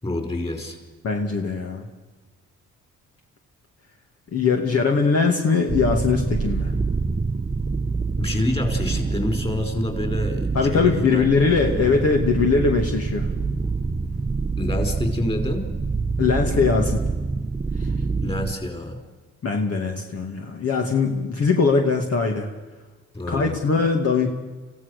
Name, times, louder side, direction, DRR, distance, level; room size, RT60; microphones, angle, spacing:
voice 1, 0.0-0.8 8.2-12.0 14.6-15.7 18.2-19.0 23.1-23.6, left 1 dB, 20° left, 5 dB, 5.1 m, -28 dB
voice 2, 1.0-1.9 4.3-6.7 10.5-13.3 16.2-17.0 17.8-17.9 19.4-22.5 23.3-24.3, left 4 dB, 50° left, 2 dB, 2.3 m, -21 dB
sound 1, 5.7-18.5, right 4 dB, 20° right, 1.0 m, -26 dB
27.0 x 16.0 x 6.8 m, 1.3 s
cardioid pair, 90°, 30 cm